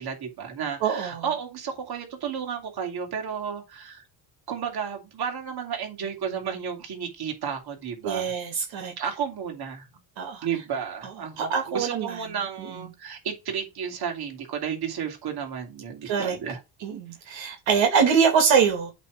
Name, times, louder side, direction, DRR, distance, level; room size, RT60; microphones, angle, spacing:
voice 1, 0.0-4.0 4.5-8.3 9.0-9.9 10.4-16.6, right 7 dB, 55° right, 2.8 m, -32 dB
voice 2, 0.8-1.2 8.0-8.9 10.2-10.5 11.4-12.1 16.0-16.4 16.8-18.9, right 6 dB, 70° right, 2.5 m, -23 dB
8.1 x 3.5 x 6.3 m
cardioid pair, 120°, 46 cm